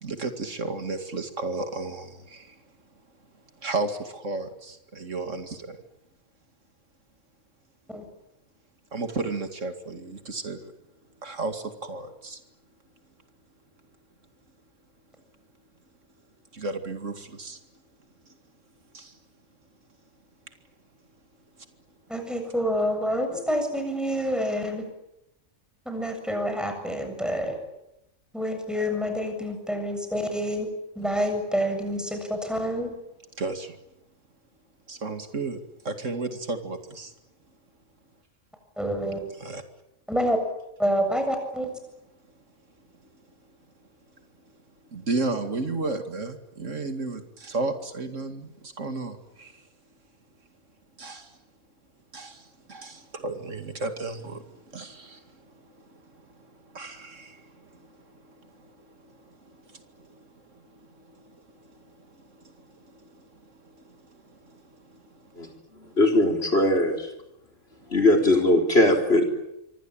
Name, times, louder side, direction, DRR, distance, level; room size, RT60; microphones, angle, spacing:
voice 1, 0.0-2.6 3.6-5.8 8.9-10.7 11.2-12.4 16.5-17.6 18.9-19.2 33.4-33.8 34.9-35.6 35.8-37.1 39.4-39.6 44.9-49.6 51.0-51.3 52.1-65.5 65.9-66.0 67.8-67.9, right 3 dB, 75° right, 7 dB, 2.6 m, -34 dB
voice 2, 22.1-24.9 25.9-27.6 28.3-30.7 31.0-32.9 38.8-39.2 40.1-40.4 40.8-41.7, equal, ahead, 5 dB, 7.5 m, -27 dB
voice 3, 66.0-67.1 67.9-69.2, left 1 dB, 55° left, 3 dB, 4.2 m, -20 dB
26.5 x 24.0 x 8.9 m, 0.87 s
omnidirectional pair, 1.3 m